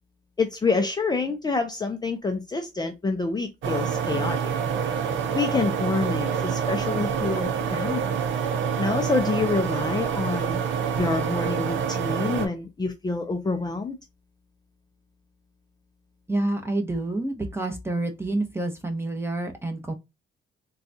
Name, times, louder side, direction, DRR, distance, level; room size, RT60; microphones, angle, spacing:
voice 1, 0.4-4.4 5.3-8.1 8.8-10.6 11.0-14.0, left 3 dB, 20° left, 0.5 m, -27 dB
sound 1, 3.6-12.5, right 7 dB, 75° right, 0.8 m, -27 dB
voice 2, 16.3-19.9, right 2 dB, 10° right, 0.9 m, -28 dB
3.7 x 2.3 x 2.7 m
cardioid pair, 90°, 20 cm